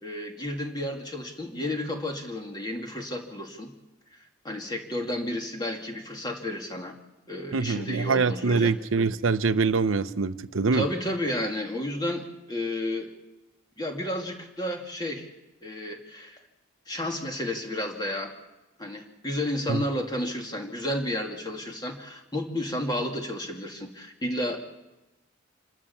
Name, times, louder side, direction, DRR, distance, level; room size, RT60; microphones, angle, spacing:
voice 1, 0.0-3.7 4.4-6.9 7.3-8.8 10.7-13.1 13.8-15.3 15.6-16.4 16.9-18.3 18.8-24.6, left 1 dB, 20° left, 2 dB, 2.5 m, -32 dB
voice 2, 7.5-10.9 19.7-19.8, right 4 dB, 75° right, 13 dB, 0.7 m, -24 dB
27.0 x 13.0 x 7.2 m, 1.0 s
head